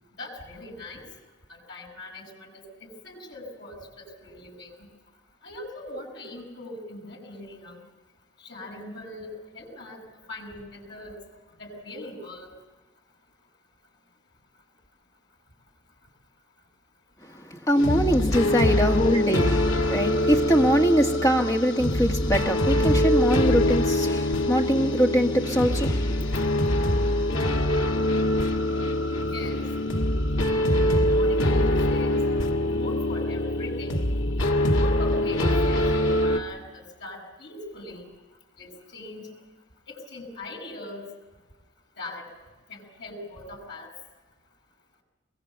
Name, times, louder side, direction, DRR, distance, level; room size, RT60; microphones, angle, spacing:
voice 1, 0.2-1.0 1.5-4.7 5.4-7.8 8.4-10.0 10.3-11.1 11.6-12.5 29.2-29.6 30.9-32.2 32.5-34.0 34.7-38.0 38.6-39.3 39.9-41.0 42.0-42.2 42.7-43.9, left 1 dB, 55° left, 8.0 m, -40 dB
voice 2, 17.3-27.2, equal, 15° left, 1.7 m, -24 dB
sound 1, 17.8-36.4, left 1 dB, 80° left, 2.2 m, -24 dB
23.5 x 22.0 x 8.1 m
head